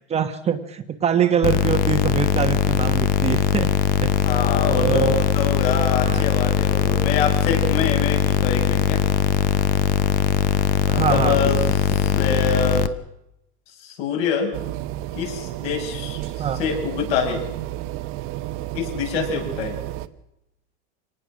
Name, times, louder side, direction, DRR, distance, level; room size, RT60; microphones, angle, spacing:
voice 1, 0.0-3.7 4.0-4.1 4.7-5.2 6.0-6.2 10.9-11.4 16.4-16.6, right 8 dB, 20° right, 7 dB, 1.2 m, -23 dB
sound 1, 1.4-12.9, left 9 dB, 25° left, 0.9 m, -20 dB
voice 2, 4.2-9.0 10.9-11.6 11.9-12.9 13.8-14.5 15.2-17.4 18.7-19.8, left 5 dB, 60° left, 3 dB, 7.1 m, -25 dB
sound 2, 14.5-20.1, right 14 dB, 40° right, 1.1 m, -31 dB
25.5 x 19.0 x 6.3 m, 0.84 s
supercardioid pair, 150°, 33 cm